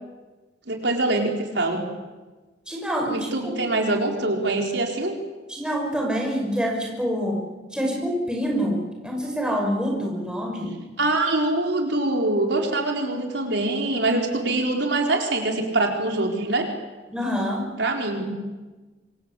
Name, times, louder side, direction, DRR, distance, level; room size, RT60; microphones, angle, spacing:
voice 1, 0.7-1.8 3.1-5.1 11.0-16.7 17.8-18.3, right 2 dB, 70° right, 2 dB, 4.3 m, -24 dB
voice 2, 2.7-3.7 5.5-7.5 7.7-10.7 17.1-17.7, equal, 5° right, 0 dB, 6.1 m, -26 dB
26.5 x 26.5 x 8.4 m, 1.3 s
head